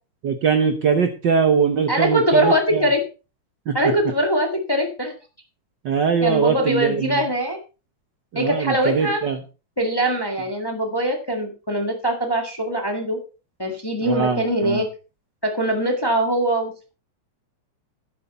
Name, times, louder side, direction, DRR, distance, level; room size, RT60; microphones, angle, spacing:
voice 1, 0.2-2.8 3.7-3.9 5.8-7.2 8.3-9.4 14.0-14.8, right 6 dB, 90° right, 6 dB, 0.9 m, -21 dB
voice 2, 1.9-3.0 3.7-5.1 6.2-7.6 8.3-9.2 9.8-13.2 13.6-14.9 15.4-16.9, right 1 dB, 15° left, 3 dB, 0.9 m, -22 dB
11.0 x 9.6 x 4.3 m, 0.33 s
omnidirectional pair, 3.6 m